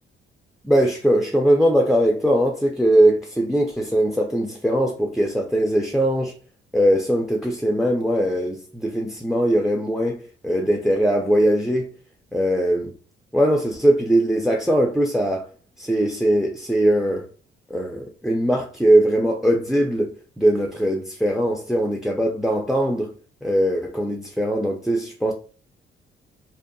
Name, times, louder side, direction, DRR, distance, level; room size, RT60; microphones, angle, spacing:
voice 1, 0.6-6.3 6.7-11.9 12.3-12.9 13.3-15.4 15.8-17.2 17.7-23.1 23.4-25.3, right 1 dB, ahead, 0.3 m, -20 dB
2.7 x 2.2 x 2.5 m
cardioid pair, 90°, 20 cm